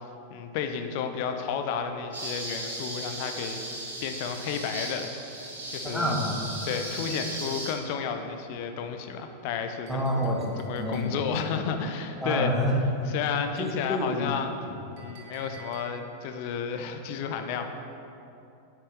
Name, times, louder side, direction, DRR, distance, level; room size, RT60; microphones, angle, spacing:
voice 1, 0.3-3.6 4.0-6.2 6.6-10.3 10.6-12.5 13.1-14.5 14.9-17.7, left 7 dB, 45° left, 7 dB, 0.6 m, -32 dB
sound 1, 2.1-7.7, right 1 dB, 70° right, 1.6 m, -37 dB
voice 2, 5.8-6.5 9.9-11.5 12.2-12.8 13.6-14.3 14.7-14.8, equal, ahead, -3 dB, 1.1 m, -28 dB
Chink clink, 9.9-11.4 15.0-16.2, right 8 dB, 50° right, 1.2 m, -51 dB
8.9 x 6.0 x 3.4 m, 2.8 s
figure-of-eight pair, 90°, 0 cm